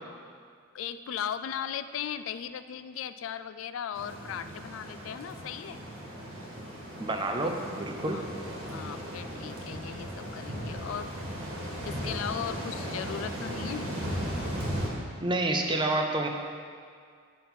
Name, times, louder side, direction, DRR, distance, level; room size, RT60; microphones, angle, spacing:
voice 1, 0.7-5.8 8.1-8.3 8.6-11.1 11.8-13.9, left 8 dB, 70° left, 12 dB, 0.3 m, -37 dB
sound 1, 3.9-14.9, equal, 75° right, 1.7 m, -37 dB
voice 2, 7.0-8.3 15.2-16.3, right 2 dB, 20° right, 3 dB, 0.5 m, -28 dB
7.4 x 5.5 x 4.4 m, 2.1 s
head